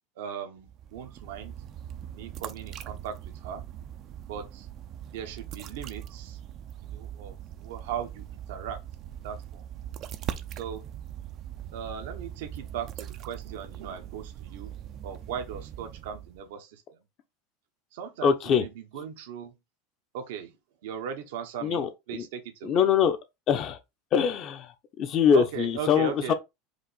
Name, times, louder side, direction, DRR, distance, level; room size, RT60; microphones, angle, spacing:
voice 1, 0.2-1.5 2.1-3.1 3.4-3.6 4.3-4.7 5.1-6.4 6.8-8.8 9.2-9.6 10.6-10.9 11.7-14.7 15.0-16.8 17.9-18.7 18.9-19.5 20.1-20.5 20.8-21.8 22.1-22.8 25.3-26.3, right 8 dB, 80° right, 1.0 m, -38 dB
sound 1, 0.6-16.5, right 10 dB, 45° right, 0.5 m, -41 dB
voice 2, 18.2-18.7 18.9-19.0 21.6-22.3 22.6-23.2 23.5-23.8 24.1-26.3, left 7 dB, 45° left, 0.9 m, -24 dB
5.0 x 2.6 x 4.1 m
supercardioid pair, 115°, 0 cm